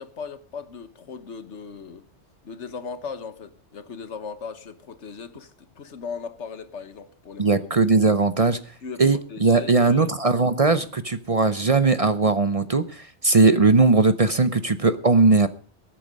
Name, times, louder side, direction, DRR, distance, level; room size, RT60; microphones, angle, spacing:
voice 1, 0.0-2.0 2.4-7.6 8.8-10.2, left 5 dB, 80° left, 1.5 m, -38 dB
voice 2, 7.4-8.6 9.0-15.5, right 3 dB, 35° right, 0.7 m, -19 dB
20.0 x 8.7 x 5.3 m
omnidirectional pair, 1.2 m